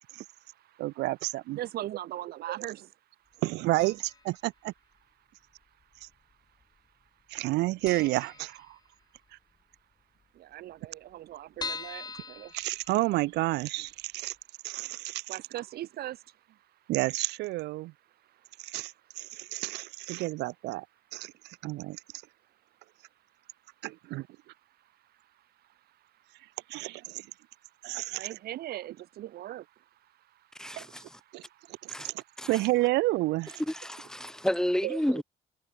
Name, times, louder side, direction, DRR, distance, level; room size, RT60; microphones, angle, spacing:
voice 1, 0.1-0.8 1.5-2.9 3.2-3.3 5.3-6.4 6.7-6.8 10.3-12.6 14.2-16.9 18.1-19.6 21.4-21.6 22.3-23.6 24.6-26.6 27.2-32.5 34.2-34.5, right 14 dB, 65° right, 1.5 m, -44 dB
voice 2, 0.8-1.6 3.4-4.7 6.0-6.1 7.3-8.8 12.5-14.4 14.6-15.4 16.9-17.9 18.6-20.9 21.1-22.0 23.8-24.3 26.7-27.3 27.8-28.3 30.8-30.9 31.3-31.4 31.7-33.6 34.8-35.0, right 20 dB, 90° right, 2.6 m, -30 dB
sound 1, 3.8-4.3 4.6-4.7 5.6-6.3 6.6-6.8 7.1-7.2 7.5-7.6 7.9-9.2 9.6-9.7 9.9-10.0 10.2-10.3 10.8-13.4 13.9-14.0 14.4-14.5, left 4 dB, 25° left, 3.0 m, -42 dB
voice 3, 30.6-31.2 31.9-32.1 32.4-32.6 33.7-35.2, equal, 5° left, 1.9 m, -31 dB
cardioid pair, 110°, 17 cm